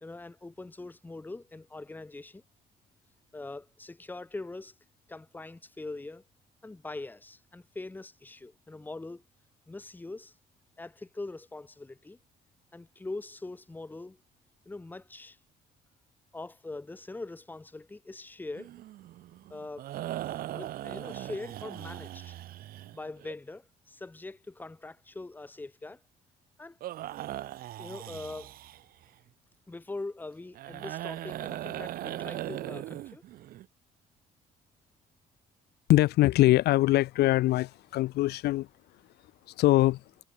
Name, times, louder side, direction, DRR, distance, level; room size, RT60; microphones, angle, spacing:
voice 1, 0.0-2.4 3.3-4.7 5.1-6.2 6.6-9.2 9.7-10.3 10.8-12.2 12.7-14.2 14.7-15.4 16.3-18.7 19.5-19.9 20.5-22.4 22.9-26.0 26.6-26.8 27.8-28.5 29.7-33.2, left 2 dB, 10° left, 1.1 m, -42 dB
sound 1, 18.6-23.3 26.8-29.1 30.5-33.7, right 14 dB, 60° right, 0.6 m, -39 dB
voice 2, 35.9-38.7 39.5-40.0, left 17 dB, 75° left, 0.8 m, -23 dB
cardioid pair, 110°, 17 cm